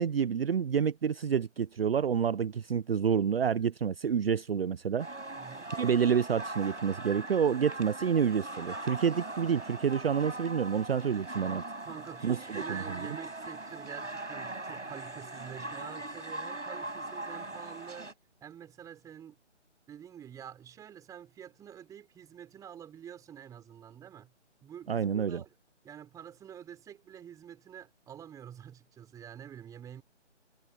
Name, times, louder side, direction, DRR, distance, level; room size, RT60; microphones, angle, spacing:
voice 1, 0.0-5.1 5.7-11.6 12.2-13.0 24.9-25.4, right 7 dB, 55° right, 0.7 m, -28 dB
sound 1, 5.0-18.1, right 2 dB, 90° right, 5.3 m, -40 dB
voice 2, 5.4-5.7 11.8-18.1 18.4-19.4 19.9-24.3 24.6-25.5 25.8-30.0, right 9 dB, 10° right, 4.7 m, -47 dB
figure-of-eight pair, 145°, 36 cm